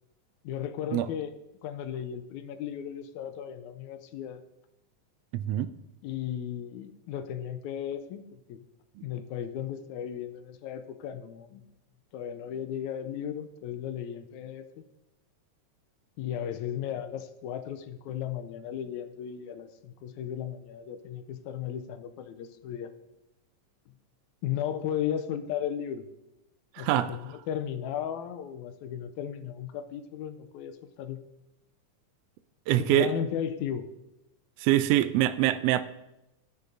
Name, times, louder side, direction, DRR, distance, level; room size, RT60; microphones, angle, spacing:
voice 1, 0.4-1.3 1.6-4.4 6.0-8.6 9.0-11.7 12.1-14.7 16.2-22.9 24.4-26.1 26.8-31.2 32.8-33.9, left 9 dB, 90° left, 9 dB, 2.0 m, -35 dB
voice 2, 5.3-5.7 26.7-27.1 32.7-33.1 34.6-35.8, right 14 dB, 85° right, 12 dB, 1.4 m, -24 dB
15.0 x 9.6 x 2.7 m, 0.90 s
omnidirectional pair, 3.3 m